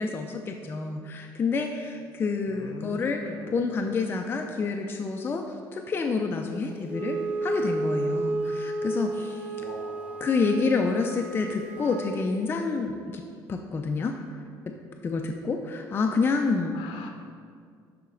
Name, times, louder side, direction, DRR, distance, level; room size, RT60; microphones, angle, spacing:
voice 1, 0.0-9.5 10.2-13.2 13.5-14.4 14.7-14.8 15.0-16.8, left 4 dB, 25° left, 3 dB, 0.4 m, -28 dB
voice 2, 2.5-3.5 9.6-10.3 16.7-17.1, left 4 dB, 80° left, 3 dB, 0.6 m, -42 dB
Wind instrument woodwind instrument, 6.9-12.2, right 2 dB, 15° right, 0.7 m, -32 dB
11.5 x 4.1 x 3.8 m, 2.2 s
cardioid pair, 130°, 8 cm